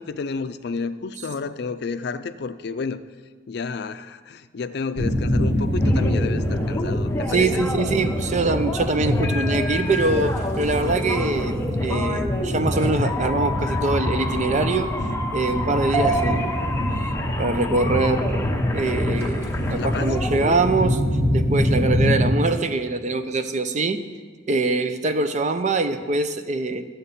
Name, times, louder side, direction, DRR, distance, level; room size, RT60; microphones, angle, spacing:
voice 1, 0.0-3.0 3.5-7.6 19.8-20.2, left 4 dB, 65° left, 12 dB, 0.4 m, -31 dB
sound 1, 5.0-22.3, equal, 15° right, 1.5 m, -24 dB
sound 2, 5.8-20.6, left 1 dB, 15° left, 0.9 m, -31 dB
voice 2, 7.3-14.9 15.3-16.6 17.4-21.0 21.3-24.0 24.5-26.8, right 3 dB, 40° right, 9 dB, 0.6 m, -24 dB
13.0 x 7.9 x 4.2 m, 1.5 s
head